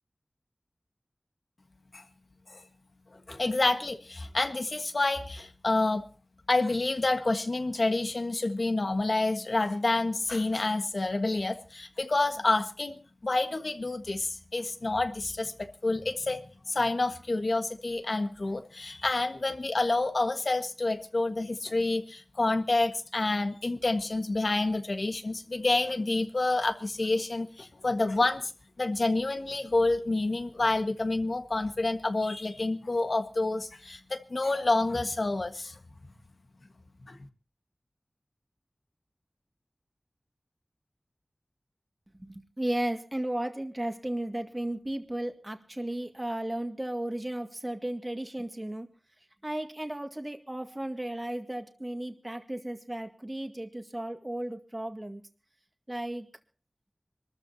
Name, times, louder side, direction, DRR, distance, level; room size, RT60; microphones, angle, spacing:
voice 1, 3.1-6.0 6.5-16.4 16.7-28.5 28.8-35.8 37.1-37.2, left 2 dB, 70° left, 7 dB, 1.5 m, -28 dB
voice 2, 42.2-48.9 49.4-55.2 55.9-56.3, right 1 dB, 25° right, 5 dB, 1.9 m, -34 dB
26.0 x 13.5 x 2.8 m, 0.38 s
wide cardioid pair, 45°, 0 cm